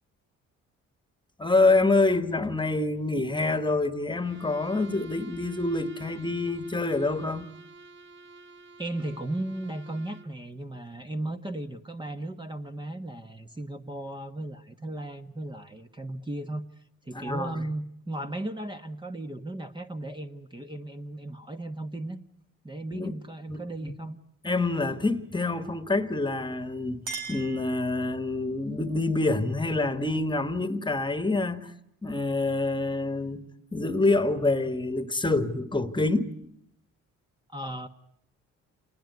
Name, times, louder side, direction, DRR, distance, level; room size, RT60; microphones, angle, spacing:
voice 1, 1.4-7.5 17.1-17.7 22.9-23.1 23.5-23.9 24.4-31.7 32.0-33.4 33.7-36.3, left 2 dB, 15° left, 1.6 m, -26 dB
Bowed string instrument, 4.2-10.4, right 3 dB, 40° right, 1.5 m, -49 dB
voice 2, 8.8-16.6 17.0-22.2 22.6-24.2 37.5-37.9, right 1 dB, 15° right, 1.3 m, -36 dB
Chink clink, 26.5-28.4, right 4 dB, 90° right, 6.1 m, -41 dB
27.5 x 20.5 x 9.3 m
cardioid pair, 90°, 30 cm